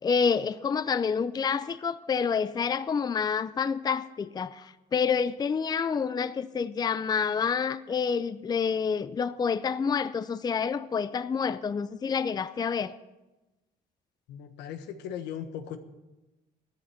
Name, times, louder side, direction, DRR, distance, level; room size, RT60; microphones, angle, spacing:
voice 1, 0.0-13.0, left 6 dB, 25° left, 0.5 m, -28 dB
voice 2, 14.3-15.8, left 9 dB, 85° left, 1.4 m, -38 dB
14.0 x 13.5 x 5.9 m
cardioid pair, 110°, 17 cm